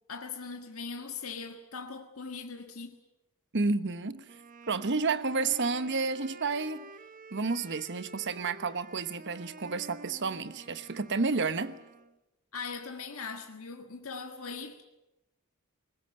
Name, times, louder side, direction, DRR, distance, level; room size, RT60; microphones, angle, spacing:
voice 1, 0.1-3.0 12.5-14.8, left 5 dB, 75° left, 1.6 m, -40 dB
voice 2, 3.5-4.3 4.7-6.9 7.3-11.8, right 4 dB, 55° right, 1.2 m, -30 dB
Wind instrument woodwind instrument, 4.3-12.2, right 3 dB, 40° right, 0.9 m, -50 dB
22.0 x 20.5 x 8.9 m
head